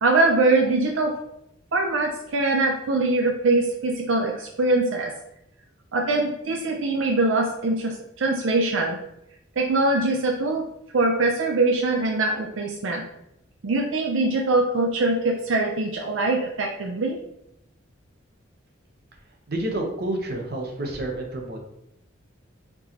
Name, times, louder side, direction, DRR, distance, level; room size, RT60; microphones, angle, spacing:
voice 1, 0.0-1.1 1.7-5.1 5.9-9.0 9.6-10.7 10.9-13.0 13.6-17.2, right 2 dB, 75° right, 2 dB, 0.5 m, -23 dB
voice 2, 19.5-21.6, right 1 dB, 50° right, 2 dB, 0.8 m, -29 dB
4.6 x 3.8 x 2.8 m, 0.81 s
head